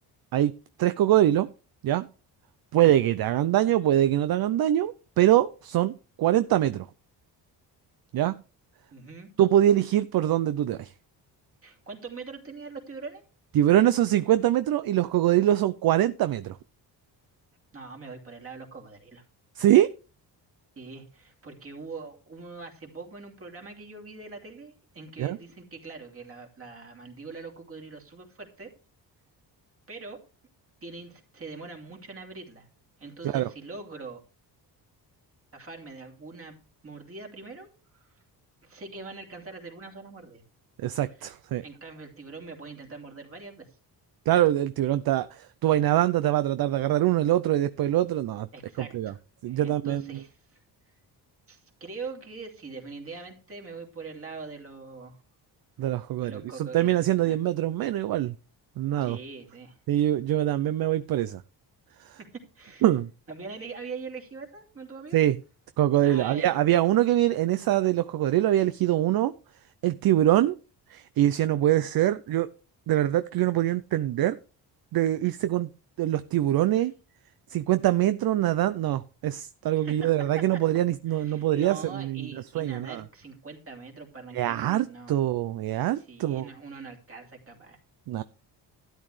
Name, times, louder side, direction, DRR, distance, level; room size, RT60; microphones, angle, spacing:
voice 1, 0.8-1.5 1.8-2.1 2.7-6.9 8.1-8.4 9.4-10.9 13.5-16.6 19.6-19.9 25.2-25.4 33.3-33.5 40.8-41.6 44.3-48.5 48.9-49.1 49.4-50.2 55.8-58.4 58.8-59.2 59.9-61.4 62.0-62.2 62.8-63.1 65.1-65.4 65.8-69.3 69.8-70.6 70.9-72.5 72.9-74.4 74.9-75.7 76.0-76.9 77.5-83.0 84.3-86.5 88.1-88.2, right 13 dB, 60° right, 13 dB, 0.6 m, -24 dB
voice 2, 8.9-9.3 11.6-13.2 17.7-19.2 20.8-28.7 29.9-30.2 30.8-32.7 33.0-34.2 35.5-36.6 36.8-37.7 38.0-38.1 38.6-40.4 41.6-43.8 48.5-49.2 49.5-50.6 51.5-55.2 56.2-57.4 59.0-59.8 62.2-62.9 63.3-65.2 66.0-66.6 79.8-80.1 80.3-80.4 81.1-85.2 86.0-87.8, right 4 dB, 30° right, 2 dB, 2.8 m, -42 dB
12.5 x 10.5 x 3.3 m, 0.34 s
cardioid pair, 135°, 42 cm